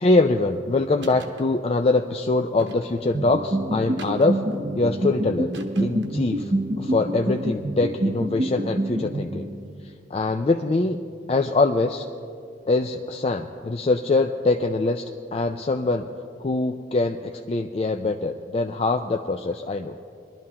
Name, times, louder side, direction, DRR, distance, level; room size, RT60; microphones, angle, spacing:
voice 1, 0.0-4.4 4.8-6.5 6.8-9.5 10.1-11.0 11.3-12.1 12.7-16.1 16.4-19.9, left 3 dB, 30° left, 5 dB, 0.3 m, -23 dB
sound 1, 1.0-1.4 2.6-3.1 4.0-4.6 5.5-6.2, right 2 dB, 80° right, 1.1 m, -41 dB
sound 2, 3.1-9.8, right 1 dB, 35° right, 0.6 m, -27 dB
21.5 x 12.0 x 2.9 m, 2.4 s
head